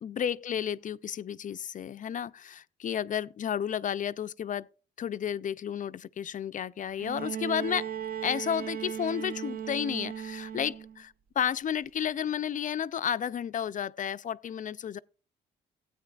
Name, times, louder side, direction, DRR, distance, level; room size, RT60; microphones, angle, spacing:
voice 1, 0.0-4.7 5.0-7.9 8.2-15.0, left 9 dB, 40° left, 0.4 m, -32 dB
Bowed string instrument, 7.0-11.0 12.3-12.4, right 9 dB, 45° right, 0.5 m, -37 dB
15.5 x 8.8 x 2.3 m
cardioid pair, 90°, 20 cm